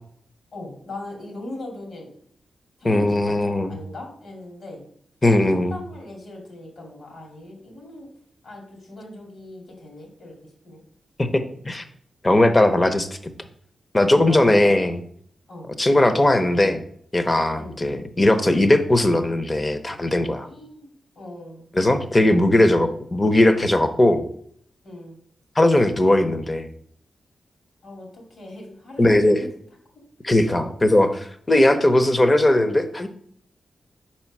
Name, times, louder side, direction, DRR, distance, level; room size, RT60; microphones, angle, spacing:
voice 1, 0.5-2.1 2.8-4.8 5.5-8.1 8.4-10.3 10.6-10.8 14.1-14.5 15.5-15.7 17.4-17.8 20.4-21.7 24.8-25.2 27.8-29.5 30.5-30.7, left 1 dB, 70° left, 0 dB, 2.5 m, -39 dB
voice 2, 2.8-3.8 5.2-5.8 11.2-11.8 12.2-13.1 13.9-15.0 15.8-16.8 17.1-20.5 21.7-24.2 25.6-26.7 29.0-29.4 30.2-33.1, left 1 dB, 25° left, 9 dB, 0.7 m, -18 dB
5.0 x 4.4 x 6.0 m, 0.64 s
cardioid pair, 90°, 0 cm